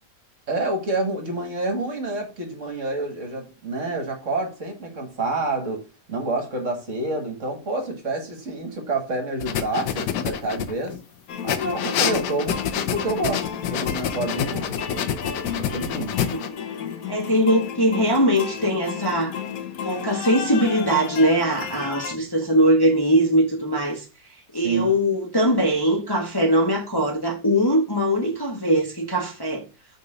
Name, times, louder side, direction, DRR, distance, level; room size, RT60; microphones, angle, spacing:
voice 1, 0.5-5.8 6.1-11.0 11.4-15.1 15.5-16.2 24.6-24.9, right 2 dB, 50° right, 1.9 m, -28 dB
sound 1, 9.4-11.0 11.5-16.5, left 9 dB, 85° left, 1.4 m, -27 dB
sound 2, 11.3-22.1, left 8 dB, 60° left, 1.2 m, -33 dB
voice 2, 16.2-16.6 17.1-19.4 19.8-24.0 24.5-29.6, equal, 15° left, 1.2 m, -21 dB
6.7 x 4.1 x 4.9 m
omnidirectional pair, 1.8 m